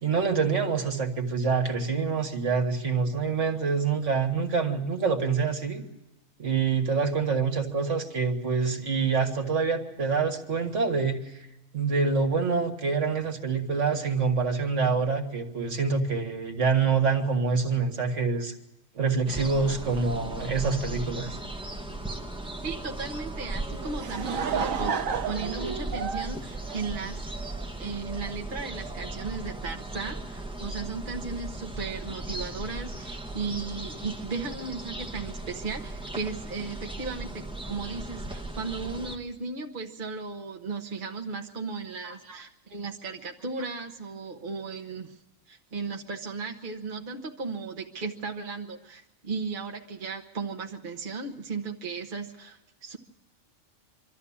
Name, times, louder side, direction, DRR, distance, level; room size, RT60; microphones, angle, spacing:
voice 1, 0.0-5.8 6.4-11.4 11.7-18.5 19.0-21.4 42.0-42.1, right 5 dB, 65° right, 5 dB, 2.0 m, -26 dB
sound 1, 19.3-39.2, right 2 dB, 5° right, 1.1 m, -37 dB
voice 2, 22.6-25.0 25.3-27.3 27.8-45.2 45.5-53.0, right 4 dB, 40° right, 4 dB, 1.2 m, -36 dB
Laughter / Crowd, 23.7-27.5, right 6 dB, 85° right, 1.3 m, -31 dB
24.5 x 13.0 x 8.6 m, 1.0 s
omnidirectional pair, 1.3 m